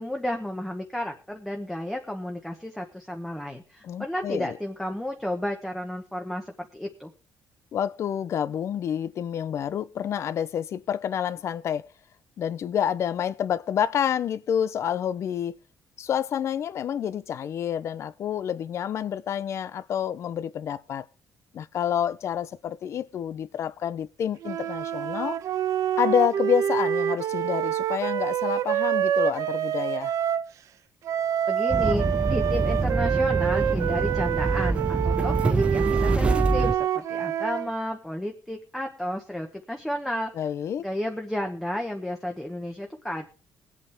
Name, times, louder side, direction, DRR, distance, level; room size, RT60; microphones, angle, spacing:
voice 1, 0.0-7.1 31.5-40.3 40.8-43.3, left 1 dB, 5° left, 1.1 m, -32 dB
voice 2, 3.8-4.6 7.7-11.9 12.4-15.6 16.0-21.1 21.5-25.4 26.0-30.1 40.3-40.9, left 9 dB, 55° left, 0.6 m, -28 dB
sound 1, 24.4-30.5 31.1-37.7, right 10 dB, 65° right, 0.9 m, -27 dB
sound 2, 31.7-36.7, right 3 dB, 20° right, 0.6 m, -25 dB
20.0 x 8.4 x 3.5 m
cardioid pair, 135°, 6 cm